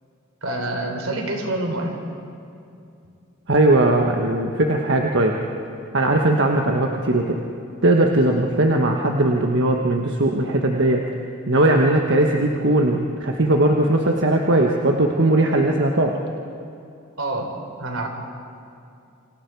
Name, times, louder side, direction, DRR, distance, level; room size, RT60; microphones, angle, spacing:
voice 1, 0.4-1.9 17.2-18.1, right 2 dB, 80° right, 3 dB, 3.9 m, -27 dB
voice 2, 3.5-5.4 5.9-7.4 7.8-11.0 11.5-16.2, right 1 dB, 60° right, 1 dB, 1.4 m, -19 dB
29.5 x 26.0 x 4.8 m, 2.5 s
head